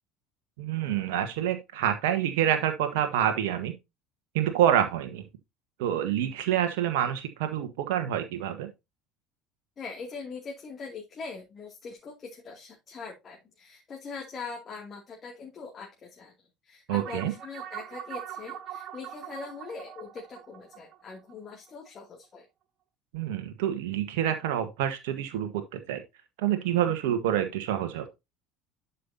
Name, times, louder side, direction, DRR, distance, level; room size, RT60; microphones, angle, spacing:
voice 1, 0.6-3.7 4.3-5.2 5.8-8.7 16.9-17.3 23.1-26.0 26.4-28.1, right 10 dB, 65° right, 1.3 m, -27 dB
voice 2, 9.8-16.3 16.6-22.4, left 4 dB, 35° left, 2.4 m, -42 dB
sound 1, 17.0-21.9, right 11 dB, 50° right, 1.1 m, -42 dB
11.5 x 5.7 x 2.8 m
figure-of-eight pair, 65°, 0 cm